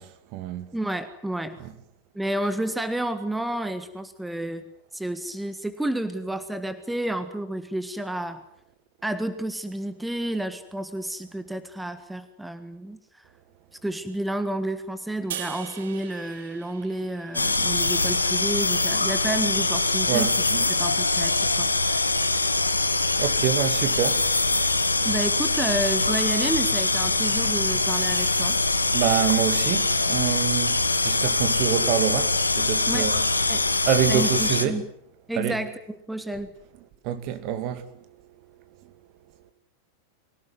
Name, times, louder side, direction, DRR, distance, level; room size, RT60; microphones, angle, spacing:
voice 1, 0.0-0.7 1.6-1.7 20.1-20.6 23.2-24.2 28.9-33.2 33.8-34.8 35.4-35.6 37.0-37.9, right 10 dB, 40° right, 2.4 m, -26 dB
voice 2, 0.7-1.6 2.1-4.6 4.9-8.4 9.0-13.2 13.8-20.4 20.7-22.0 25.0-28.6 32.9-33.1 33.5-33.6 34.1-34.9 35.3-36.5, right 1 dB, 5° right, 1.5 m, -30 dB
sound 1, 15.3-18.6, right 9 dB, 60° right, 1.9 m, -40 dB
sound 2, 17.3-34.6, left 3 dB, 80° left, 1.5 m, -23 dB
24.5 x 17.0 x 9.5 m
figure-of-eight pair, 90°, 0 cm